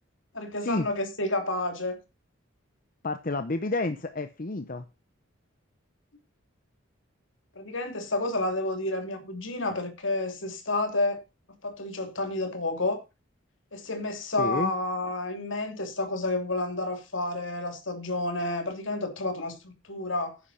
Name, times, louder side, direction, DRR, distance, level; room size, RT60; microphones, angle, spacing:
voice 1, 0.3-2.0 7.6-11.2 11.6-13.0 13.7-20.4, left 2 dB, 70° left, 2.8 m, -30 dB
voice 2, 3.0-4.8 14.4-14.7, left 2 dB, 40° left, 0.8 m, -30 dB
10.0 x 10.0 x 4.2 m
head